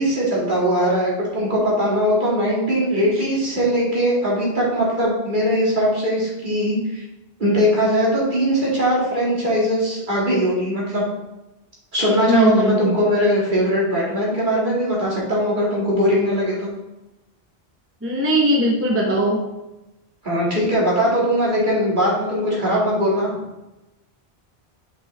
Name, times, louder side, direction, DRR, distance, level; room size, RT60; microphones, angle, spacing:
voice 1, 0.0-7.0 7.4-11.0 11.9-16.7 20.2-23.3, equal, 50° right, -5 dB, 2.3 m, -20 dB
voice 2, 12.3-13.0 18.0-19.4, right 1 dB, 15° right, -2 dB, 0.7 m, -19 dB
6.2 x 5.4 x 3.3 m, 0.98 s
omnidirectional pair, 1.1 m